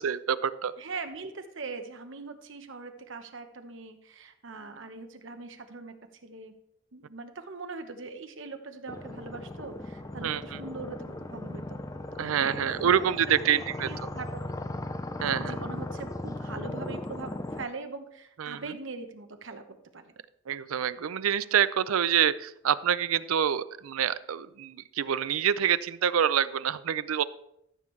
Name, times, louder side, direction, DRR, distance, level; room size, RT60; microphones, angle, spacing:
voice 1, 0.0-0.7 10.2-10.6 12.2-14.1 15.2-15.6 18.4-18.6 20.5-27.2, right 9 dB, 90° right, 16 dB, 0.4 m, -27 dB
voice 2, 0.8-6.0 6.2-6.5 6.9-11.8 12.1-14.4 15.4-19.6 19.9-20.1, right 3 dB, 65° right, 7 dB, 0.9 m, -41 dB
sound 1, 8.9-17.7, left 1 dB, 15° left, 0.4 m, -37 dB
13.5 x 7.1 x 3.2 m, 0.78 s
head